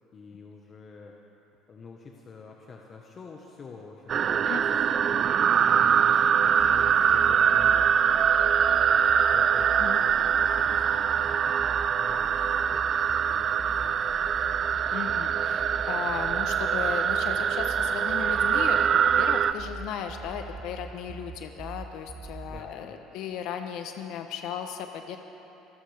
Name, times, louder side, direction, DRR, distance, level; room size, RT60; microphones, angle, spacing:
voice 1, 0.1-1.2 1.7-6.1 6.4-8.3 8.8-11.7 12.0-14.2 22.5-23.0, left 4 dB, 35° left, 0 dB, 1.3 m, -47 dB
sound 1, 4.1-19.5, right 8 dB, 45° right, 0.4 m, -23 dB
sound 2, 6.6-22.6, right 4 dB, 20° right, 0.9 m, -42 dB
voice 2, 14.9-25.2, left 8 dB, 70° left, 6 dB, 1.0 m, -36 dB
25.0 x 14.5 x 3.5 m, 2.9 s
supercardioid pair, 95°, 0 cm